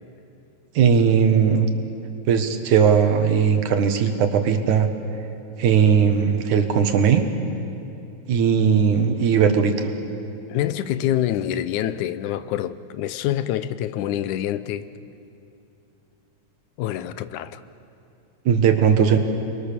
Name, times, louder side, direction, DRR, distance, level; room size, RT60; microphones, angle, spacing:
voice 1, 0.8-1.7 2.3-4.9 5.6-7.3 8.3-9.9 18.5-19.2, right 7 dB, 85° right, 6 dB, 2.9 m, -18 dB
voice 2, 10.5-14.9 16.8-17.6, left 11 dB, 90° left, 13 dB, 2.2 m, -26 dB
30.0 x 22.0 x 6.9 m, 2.7 s
omnidirectional pair, 3.4 m